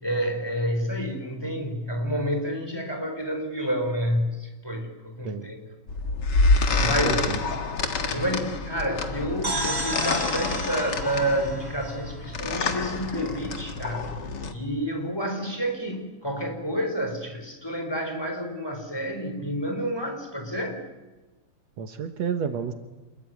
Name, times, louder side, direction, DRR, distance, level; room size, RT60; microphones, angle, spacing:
voice 1, 0.0-5.6 6.8-7.2 8.1-14.1 14.5-20.8, equal, 10° left, 4 dB, 4.0 m, -29 dB
sound 1, 5.9-14.5, left 3 dB, 40° left, 2.0 m, -27 dB
voice 2, 6.8-7.4 21.8-22.7, right 7 dB, 65° right, 7 dB, 2.3 m, -30 dB
sound 2, 9.4-13.1, right 2 dB, 30° right, 4.2 m, -33 dB
27.5 x 22.0 x 9.3 m, 1.1 s
omnidirectional pair, 3.3 m